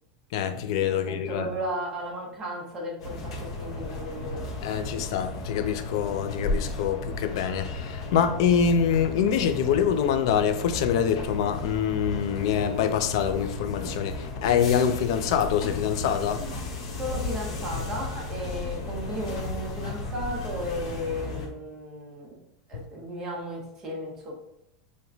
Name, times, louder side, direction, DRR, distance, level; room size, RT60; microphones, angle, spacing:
voice 1, 0.3-1.5 4.6-16.5 22.7-22.8, left 8 dB, 55° left, 0.4 m, -25 dB
voice 2, 0.9-4.5 17.0-22.4 22.7-24.3, equal, 20° right, 0.7 m, -35 dB
sound 1, 3.0-21.5, left 3 dB, 90° left, 1.0 m, -34 dB
4.8 x 2.1 x 2.6 m
supercardioid pair, 175°, 3 cm